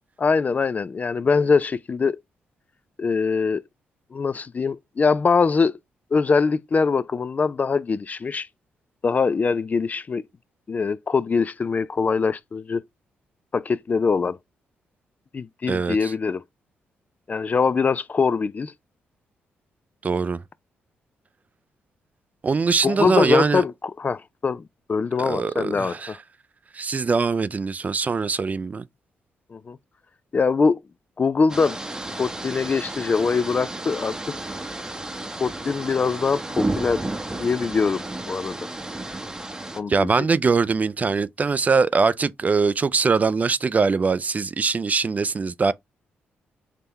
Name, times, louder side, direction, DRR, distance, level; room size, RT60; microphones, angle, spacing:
voice 1, 0.2-2.2 3.0-3.6 4.1-5.8 6.1-8.5 9.0-10.2 10.7-12.8 13.5-14.4 15.3-16.4 17.3-18.7 22.8-23.7 24.0-24.6 24.9-26.2 29.5-29.8 30.3-30.8 31.2-31.8 32.2-34.1 35.4-37.0 37.4-38.7 39.7-40.3, left 5 dB, 35° left, 0.3 m, -23 dB
voice 2, 15.7-16.1 20.0-20.4 22.4-23.6 25.3-26.2 26.7-28.8 39.9-45.7, right 4 dB, 35° right, 0.4 m, -22 dB
sound 1, 31.5-39.8, right 2 dB, 15° right, 0.7 m, -32 dB
3.7 x 2.8 x 3.2 m
supercardioid pair, 60°, 4 cm